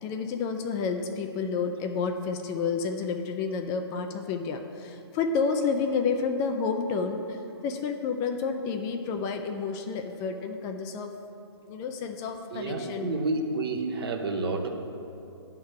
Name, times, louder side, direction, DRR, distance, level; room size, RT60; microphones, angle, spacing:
voice 1, 0.0-11.1 11.7-13.1, left 5 dB, 20° left, 5 dB, 0.4 m, -30 dB
voice 2, 12.5-14.7, right 3 dB, 60° right, 3 dB, 1.0 m, -29 dB
10.0 x 3.6 x 6.4 m, 2.7 s
hypercardioid pair, 130°, 14 cm